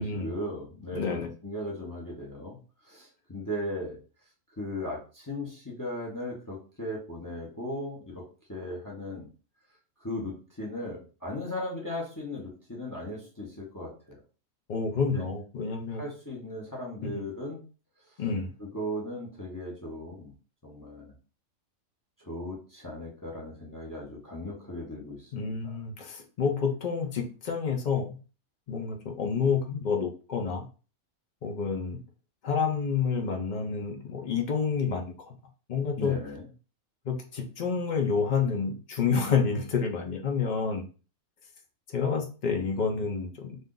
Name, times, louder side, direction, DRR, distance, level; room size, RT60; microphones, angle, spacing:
voice 1, 0.0-2.6 2.8-4.0 4.6-8.2 8.5-9.3 10.0-14.2 15.1-15.2 15.9-17.6 18.6-20.3 20.6-21.1 22.2-25.5 36.0-36.5, left 1 dB, 20° left, -2 dB, 0.7 m, -37 dB
voice 2, 0.9-1.3 14.7-16.0 17.0-17.3 18.2-18.5 25.3-28.2 28.7-30.7 31.4-32.0 32.4-35.4 35.7-36.2 37.0-40.8 41.9-43.6, left 5 dB, 60° left, 3 dB, 0.5 m, -29 dB
2.6 x 2.4 x 3.7 m, 0.36 s
omnidirectional pair, 1.5 m